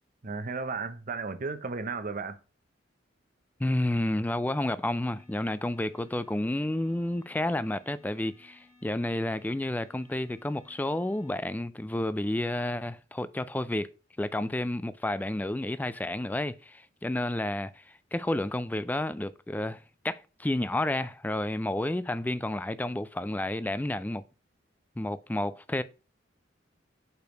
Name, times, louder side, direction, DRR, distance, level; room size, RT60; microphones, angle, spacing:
voice 1, 0.2-2.4, right 4 dB, 45° right, 0.8 m, -34 dB
voice 2, 3.6-13.9 14.2-24.2 25.0-25.8, left 1 dB, 10° left, 0.3 m, -31 dB
sound 1, 5.2-11.4, left 3 dB, 15° right, 1.9 m, -60 dB
5.2 x 4.7 x 5.0 m
head